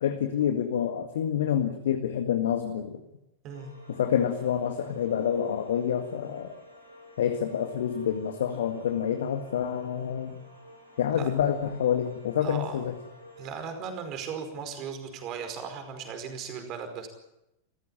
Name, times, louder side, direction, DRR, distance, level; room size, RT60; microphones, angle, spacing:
voice 1, 0.0-3.0 3.9-6.5 7.2-10.4 11.0-13.0, left 9 dB, 60° left, 7 dB, 1.8 m, -27 dB
sound 1, 3.5-13.8, left 1 dB, 85° right, 6.1 m, -51 dB
voice 2, 12.4-12.8 13.4-17.1, right 6 dB, 35° right, 7 dB, 5.0 m, -37 dB
28.5 x 15.0 x 9.0 m, 0.89 s
figure-of-eight pair, 90°, 0 cm